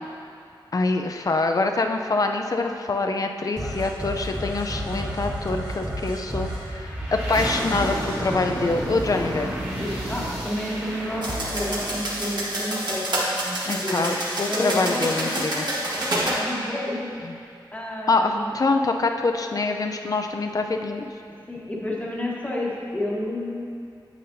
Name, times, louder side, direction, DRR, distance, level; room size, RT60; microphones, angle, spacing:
voice 1, 0.7-9.5 13.6-15.6 17.2-17.3 18.1-21.0, left 3 dB, 45° left, 5 dB, 0.5 m, -25 dB
sound 1, 3.6-12.9, right 1 dB, 20° right, 1.8 m, -31 dB
voice 2, 9.8-17.1 17.7-18.5 21.5-23.6, left 1 dB, 20° left, -4 dB, 1.4 m, -31 dB
sound 2, 11.2-16.4, right 1 dB, 60° right, 1.6 m, -28 dB
9.2 x 8.4 x 2.7 m, 2.4 s
wide cardioid pair, 100°, 8 cm